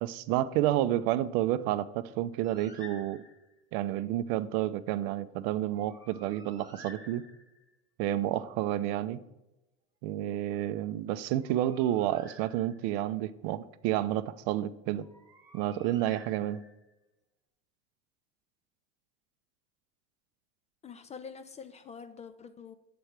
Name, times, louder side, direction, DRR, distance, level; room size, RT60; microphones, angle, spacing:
voice 1, 0.0-3.2 3.7-7.2 8.0-9.2 10.0-15.0 15.5-16.6, right 13 dB, 65° right, 14 dB, 0.5 m, -30 dB
Bird, 2.4-3.6 5.7-7.7 11.2-13.0 15.0-16.9, left 1 dB, 10° right, 1.2 m, -53 dB
voice 2, 20.8-22.7, left 6 dB, 20° left, 9 dB, 0.4 m, -46 dB
7.6 x 3.4 x 5.8 m, 0.98 s
supercardioid pair, 100°, 31 cm